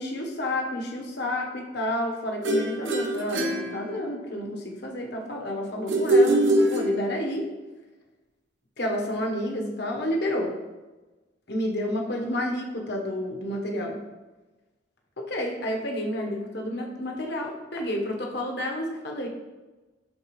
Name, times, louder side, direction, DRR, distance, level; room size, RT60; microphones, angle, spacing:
voice 1, 0.0-7.5 8.8-10.5 11.5-14.0 15.2-19.3, left 1 dB, 60° left, 1 dB, 1.2 m, -30 dB
sound 1, 2.4-4.4 5.9-7.4, right 1 dB, 85° right, 1.1 m, -23 dB
12.0 x 4.1 x 3.2 m, 1.2 s
head